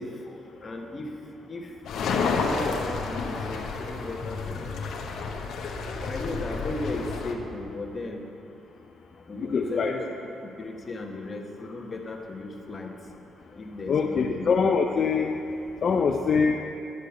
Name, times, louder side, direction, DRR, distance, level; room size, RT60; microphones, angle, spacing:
voice 1, 0.0-1.8 2.3-5.3 5.9-8.3 9.1-10.1 10.4-13.0 13.5-14.5, left 2 dB, 30° left, 1 dB, 1.2 m, -36 dB
sound 1, 1.8-7.3, left 4 dB, 75° left, 1.0 m, -30 dB
voice 2, 9.3-10.0 13.9-15.3 15.8-16.6, left 5 dB, 50° left, 2 dB, 0.5 m, -24 dB
11.0 x 5.0 x 6.9 m, 2.7 s
cardioid pair, 90°, 0 cm